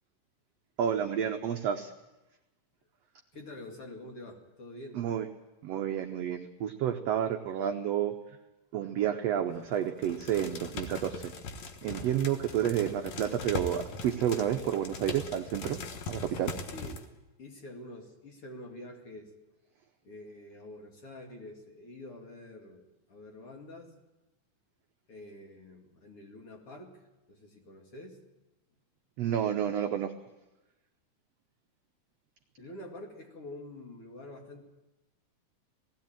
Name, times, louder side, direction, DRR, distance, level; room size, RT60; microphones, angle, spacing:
voice 1, 0.8-1.9 4.9-5.3 5.6-8.1 8.7-11.3 11.8-15.8 16.1-16.5 29.2-30.1, right 9 dB, 80° right, 5 dB, 1.4 m, -30 dB
voice 2, 3.3-5.0 16.7-17.0 17.4-19.3 20.0-23.9 25.1-27.0 27.3-28.2 32.6-34.6, left 1 dB, 45° left, 1 dB, 2.9 m, -47 dB
hydro grains, 9.5-9.8 10.0-17.1, left 3 dB, 60° left, 2.3 m, -40 dB
18.5 x 16.0 x 8.9 m, 1.0 s
omnidirectional pair, 3.9 m